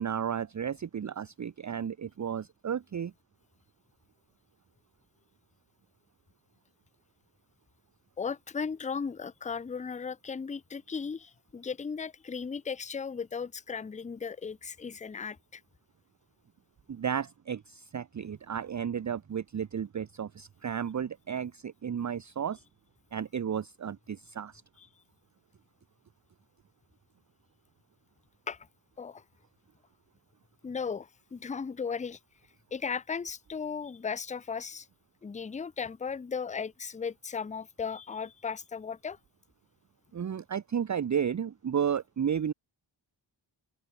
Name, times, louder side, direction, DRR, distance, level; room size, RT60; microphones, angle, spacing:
voice 1, 0.0-3.1 16.9-22.6 23.1-24.6 40.1-42.5, right 8 dB, 40° right, 0.6 m, -33 dB
voice 2, 8.2-15.6 28.5-28.6 29.0-29.2 30.6-32.2 32.7-34.9 35.2-39.2, left 6 dB, 15° left, 0.4 m, -36 dB
open air
cardioid pair, 45°, 47 cm